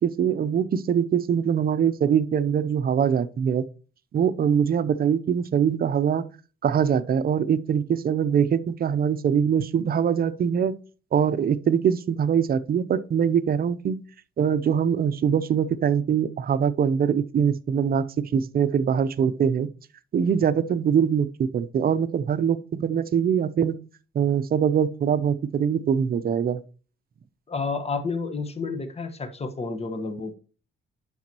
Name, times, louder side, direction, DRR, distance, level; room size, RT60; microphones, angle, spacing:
voice 1, 0.0-3.6 4.1-6.3 6.6-10.7 11.1-14.0 14.4-18.0 18.3-19.7 20.1-23.8 24.1-26.6, right 7 dB, 50° right, 0.6 m, -23 dB
voice 2, 27.5-30.4, left 4 dB, 30° left, 1.3 m, -30 dB
9.1 x 6.1 x 2.9 m
cardioid pair, 90°, 20 cm